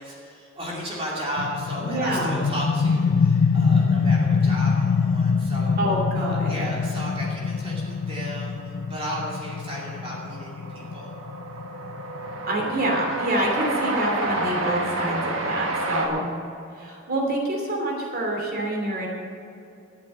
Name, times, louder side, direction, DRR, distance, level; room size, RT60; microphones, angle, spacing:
voice 1, 0.0-5.8 6.1-11.1, equal, 30° right, -5 dB, 2.9 m, -34 dB
sound 1, 1.4-12.8, left 5 dB, 90° left, 0.4 m, -24 dB
voice 2, 1.8-2.4 5.8-6.6 12.5-16.3 16.8-19.1, right 1 dB, 45° right, 0 dB, 2.9 m, -26 dB
Train, 8.6-8.7 8.9-16.1, right 2 dB, 70° right, 1.7 m, -30 dB
13.5 x 8.2 x 7.7 m, 2.6 s
head